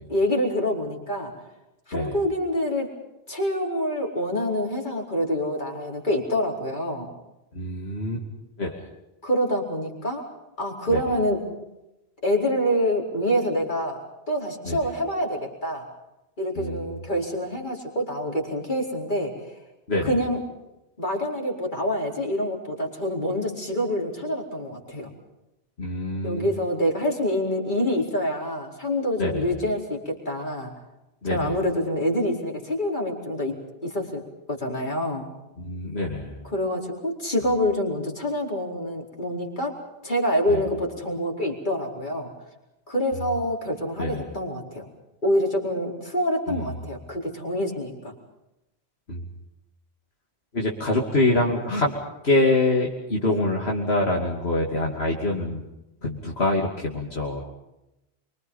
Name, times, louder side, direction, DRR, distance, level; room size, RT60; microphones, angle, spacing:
voice 1, 0.1-1.3 1.9-2.9 3.3-7.1 9.2-10.2 10.6-11.5 12.2-14.0 14.3-15.9 16.4-19.5 20.0-20.4 21.0-25.1 26.2-30.7 31.2-33.5 33.8-35.3 36.4-39.8 40.0-42.3 42.9-44.9 45.2-48.1 51.3-51.4 53.3-53.4, equal, 50° left, 0 dB, 4.9 m, -26 dB
voice 2, 7.5-8.2 8.6-8.8 10.9-11.0 14.7-14.8 16.5-17.0 19.9-20.1 25.8-26.4 29.2-29.5 31.2-31.5 35.6-36.4 40.5-40.6 44.0-44.3 46.5-46.7 49.1-49.2 50.5-51.9 52.2-55.6 56.0-57.4, left 2 dB, 75° left, -2 dB, 3.1 m, -25 dB
27.0 x 25.0 x 5.6 m, 0.91 s
omnidirectional pair, 1.1 m